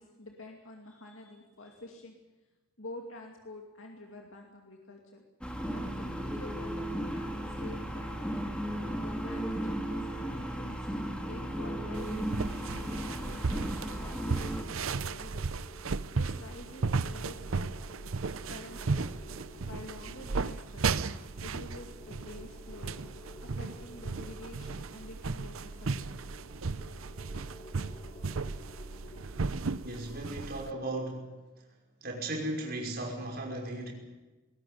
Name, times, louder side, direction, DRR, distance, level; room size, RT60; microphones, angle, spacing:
voice 1, 0.0-2.2 2.8-5.2 5.7-8.4 8.9-15.5 16.1-17.8 18.4-19.0 19.3-20.9 21.4-23.0 23.4-26.2, left 2 dB, 70° left, 1 dB, 2.5 m, -49 dB
sound 1, 5.4-14.6, equal, 5° left, 2.3 m, -35 dB
sound 2, 11.9-30.7, right 4 dB, 75° right, 0.7 m, -35 dB
sound 3, 13.2-30.3, left 2 dB, 25° left, 2.4 m, -53 dB
voice 2, 29.8-31.3 32.0-33.9, right 1 dB, 45° right, 0 dB, 5.8 m, -36 dB
20.5 x 18.0 x 9.5 m, 1.1 s
head